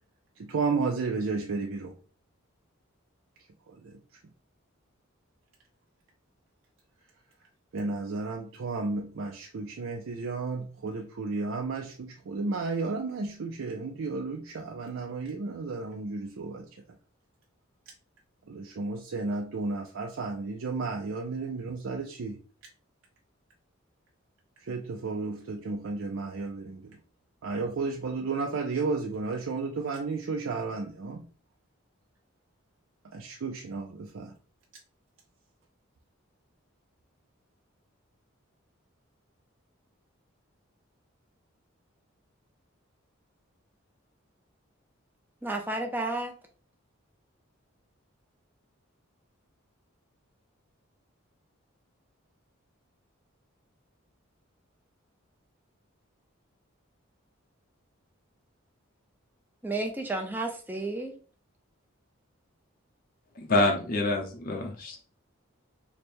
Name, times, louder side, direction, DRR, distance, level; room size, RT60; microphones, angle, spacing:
voice 1, 0.4-2.0 3.7-4.0 7.7-16.8 18.5-22.4 24.6-27.0 27.4-31.3 33.0-34.3, right 3 dB, 75° right, 0.5 m, -33 dB
voice 2, 45.4-46.3 59.6-61.1, right 2 dB, 10° right, 0.5 m, -32 dB
voice 3, 63.4-65.0, left 2 dB, 45° left, 0.6 m, -26 dB
3.3 x 2.2 x 4.3 m
head